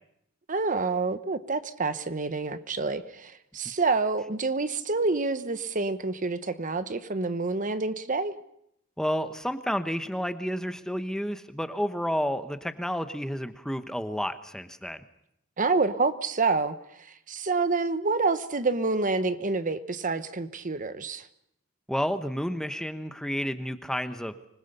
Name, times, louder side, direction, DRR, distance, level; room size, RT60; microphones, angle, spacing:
voice 1, 0.5-8.3 15.6-16.7 17.3-21.2, right 3 dB, 40° right, 12 dB, 1.1 m, -27 dB
voice 2, 9.0-15.0 21.9-24.5, equal, 5° left, 10 dB, 1.0 m, -30 dB
25.5 x 20.5 x 6.8 m, 0.74 s
head